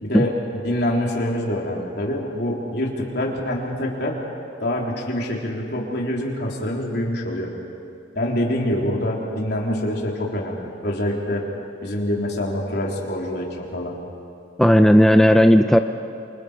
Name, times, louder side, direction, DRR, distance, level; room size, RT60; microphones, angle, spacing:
voice 1, 0.0-4.2 4.6-7.5 8.1-11.4 11.8-14.0, left 1 dB, 60° left, -2 dB, 3.7 m, -25 dB
voice 2, 14.6-15.8, equal, ahead, 6 dB, 0.5 m, -13 dB
28.0 x 26.0 x 5.1 m, 2.6 s
head